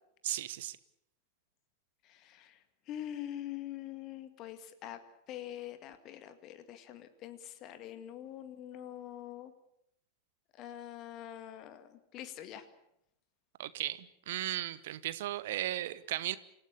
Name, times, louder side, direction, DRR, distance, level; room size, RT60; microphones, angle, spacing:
voice 1, 0.2-0.8 13.6-16.4, right 14 dB, 55° right, 17 dB, 1.1 m, -36 dB
voice 2, 2.0-2.6 2.9-5.0 5.3-9.5 10.6-12.7, left 11 dB, 35° left, 10 dB, 2.0 m, -44 dB
27.5 x 16.5 x 8.4 m, 0.78 s
figure-of-eight pair, 90°, 0 cm